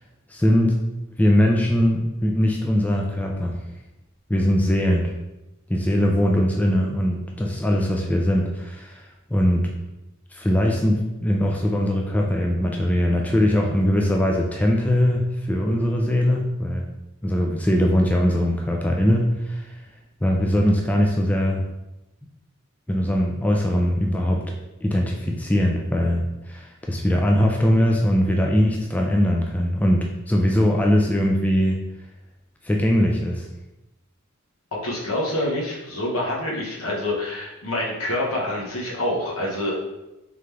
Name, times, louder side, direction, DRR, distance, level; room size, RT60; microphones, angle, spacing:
voice 1, 0.3-0.8 1.2-3.6 4.3-5.1 5.7-9.7 10.3-16.9 17.2-19.8 20.2-21.6 22.9-24.4 24.8-31.8 32.6-33.5, equal, 5° left, 0 dB, 0.3 m, -21 dB
voice 2, 34.7-39.8, left 1 dB, 80° left, -3 dB, 1.2 m, -26 dB
3.8 x 3.4 x 3.2 m, 0.97 s
head